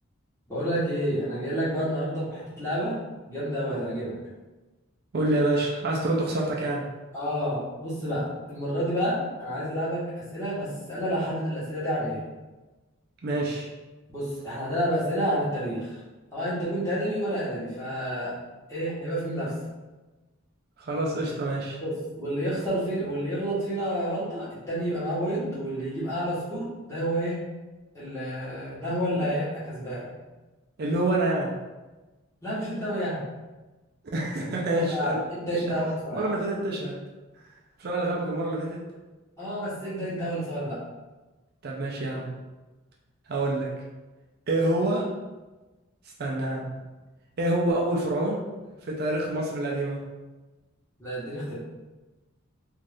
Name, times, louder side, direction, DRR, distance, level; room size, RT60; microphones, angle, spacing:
voice 1, 0.5-3.0 3.3-4.2 7.1-12.2 14.1-16.0 16.3-18.3 18.7-19.5 21.8-27.4 27.9-30.1 32.4-33.2 34.7-36.2 39.4-40.8 51.0-51.5, equal, 15° left, -10 dB, 1.1 m, -29 dB
voice 2, 5.1-6.9 13.2-13.7 20.8-21.8 30.8-31.5 34.1-35.6 36.1-37.0 37.8-38.8 41.6-42.3 43.3-43.7 44.5-45.1 46.2-46.7 47.4-48.4 48.8-50.0, right 1 dB, 50° right, -2 dB, 0.4 m, -27 dB
2.6 x 2.4 x 3.3 m, 1.2 s
head